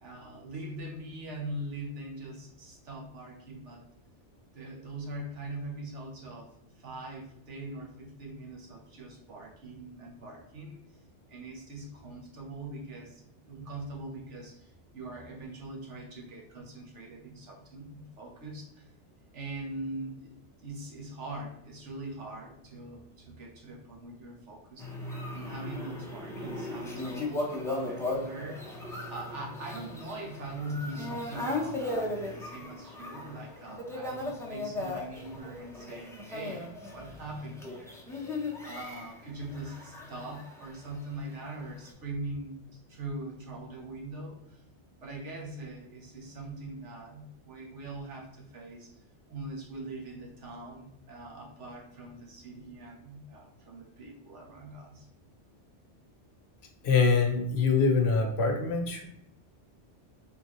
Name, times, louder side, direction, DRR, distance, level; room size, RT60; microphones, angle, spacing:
voice 1, 0.0-3.8 4.5-10.8 11.3-18.9 19.3-28.7 29.1-42.6 42.9-44.6 45.0-48.9 49.3-55.1, right 2 dB, 80° right, -1 dB, 1.3 m, -42 dB
sound 1, 24.8-41.0 41.4-41.9, left 2 dB, 5° left, 0.6 m, -37 dB
voice 2, 56.8-59.0, left 4 dB, 65° left, 3 dB, 1.0 m, -24 dB
3.7 x 3.5 x 3.0 m, 0.76 s
omnidirectional pair, 1.2 m